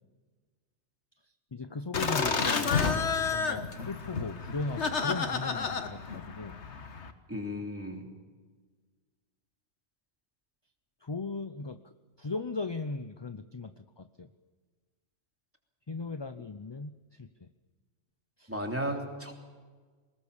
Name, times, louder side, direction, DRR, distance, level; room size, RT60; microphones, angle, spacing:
voice 1, 1.2-2.7 3.3-6.6 11.0-14.3 15.9-17.5 18.4-18.5, left 3 dB, 30° left, 10 dB, 0.6 m, -38 dB
Laughter, 1.9-7.1, left 5 dB, 70° left, 1.7 m, -30 dB
voice 2, 7.3-8.1 18.5-19.3, equal, 10° right, 2 dB, 3.2 m, -34 dB
23.5 x 20.0 x 7.1 m, 1.4 s
omnidirectional pair, 1.2 m